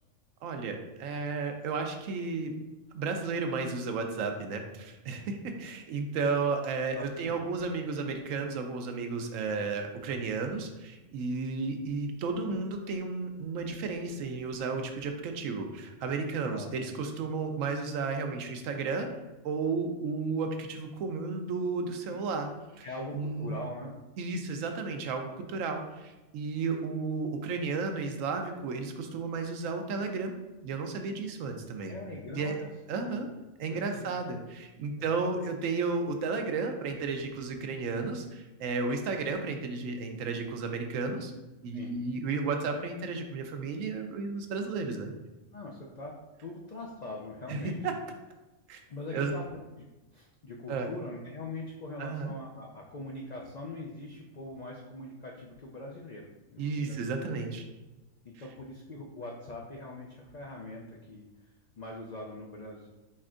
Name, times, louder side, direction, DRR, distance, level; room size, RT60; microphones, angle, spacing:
voice 1, 0.4-2.5 2.9-19.1 19.4-22.5 22.8-22.9 23.1-23.5 24.2-30.3 30.6-32.0 32.3-32.5 32.9-33.3 33.6-41.3 41.6-45.1 47.5-47.9 48.7-48.8 49.1-49.3 50.7-50.9 52.0-52.3 56.6-57.6, right 4 dB, 75° right, 5 dB, 1.0 m, -33 dB
voice 2, 6.9-7.4 16.4-16.7 22.1-22.2 22.8-24.0 31.9-32.7 33.1-33.3 33.7-34.1 35.0-35.2 41.7-42.0 45.5-46.1 46.4-47.8 48.9-49.4 49.8-49.9 50.1-57.0 58.2-61.2 61.8-62.9, left 2 dB, 80° left, -1 dB, 0.3 m, -42 dB
4.3 x 4.2 x 2.4 m, 1.1 s
omnidirectional pair, 1.4 m